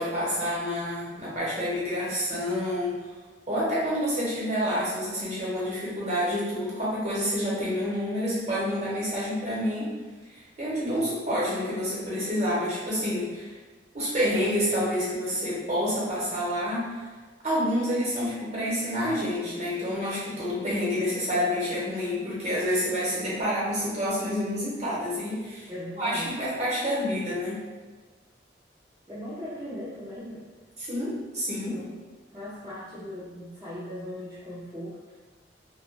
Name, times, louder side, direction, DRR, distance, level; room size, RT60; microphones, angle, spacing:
voice 1, 0.0-2.9 3.5-9.9 10.3-13.5 13.9-17.0 17.4-25.7 26.0-27.6 30.8-31.8, equal, 40° right, -8 dB, 0.9 m, -28 dB
voice 2, 25.7-26.4 29.1-30.5 31.7-32.0 32.3-35.2, equal, 20° right, -11 dB, 0.4 m, -39 dB
2.3 x 2.1 x 3.2 m, 1.3 s
head